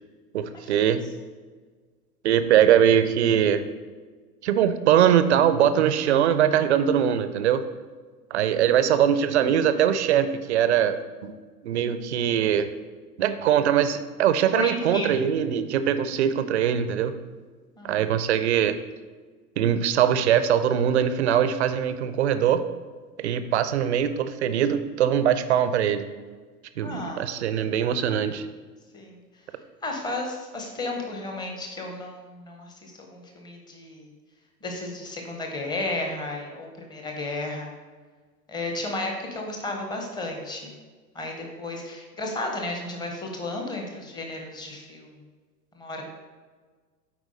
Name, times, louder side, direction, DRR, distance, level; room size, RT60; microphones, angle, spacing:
voice 1, 0.3-1.0 2.2-3.6 4.4-7.6 8.3-11.3 11.6-12.7 13.2-17.1 17.8-18.7 19.6-22.7 23.2-26.0 26.8-28.5, right 9 dB, 45° right, 11 dB, 0.5 m, -22 dB
voice 2, 14.5-15.1 17.8-18.1 26.8-27.3 28.9-29.2 29.8-34.1 34.6-37.7 38.5-40.7 41.1-45.1 45.8-46.0, left 2 dB, 10° left, 2 dB, 0.8 m, -33 dB
8.3 x 4.6 x 3.8 m, 1.5 s
figure-of-eight pair, 100°, 49 cm